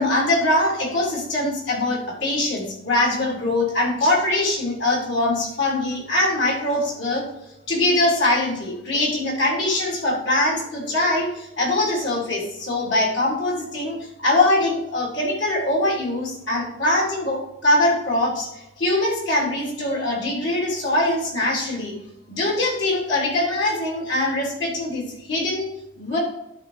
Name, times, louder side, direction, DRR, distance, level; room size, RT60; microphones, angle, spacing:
voice 1, 0.0-7.3 7.7-18.5 18.8-21.9 22.3-25.7 26.0-26.2, left 1 dB, 85° left, -2 dB, 3.3 m, -22 dB
10.5 x 4.3 x 5.0 m, 0.84 s
head